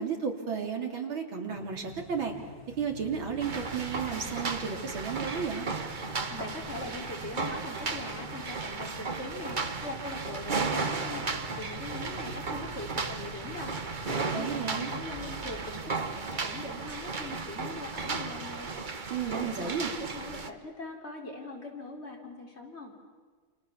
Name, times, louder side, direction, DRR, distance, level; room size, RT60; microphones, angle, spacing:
voice 1, 0.0-2.3 2.8-5.7 14.3-14.9 19.1-19.9, right 6 dB, 85° right, 3 dB, 3.8 m, -33 dB
sound 1, 1.5-15.7, left 1 dB, 5° left, 6.6 m, -48 dB
sound 2, 3.4-20.5, right 4 dB, 30° right, 1.0 m, -35 dB
voice 2, 6.3-18.7 19.2-22.9, left 2 dB, 30° left, 0 dB, 4.4 m, -42 dB
29.5 x 27.0 x 7.2 m, 1.5 s
omnidirectional pair, 2.1 m